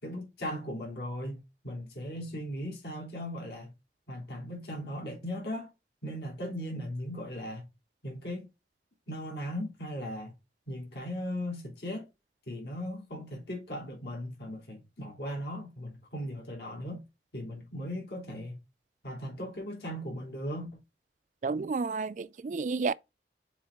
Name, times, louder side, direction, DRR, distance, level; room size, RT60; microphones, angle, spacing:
voice 1, 0.0-3.7 4.1-5.7 6.0-7.6 8.0-8.5 9.1-10.3 10.7-12.1 12.5-17.0 17.3-18.6 19.0-20.7, equal, 70° left, 3.4 m, -38 dB
voice 2, 21.4-22.9, right 4 dB, 45° right, 0.3 m, -31 dB
7.0 x 3.9 x 3.6 m
head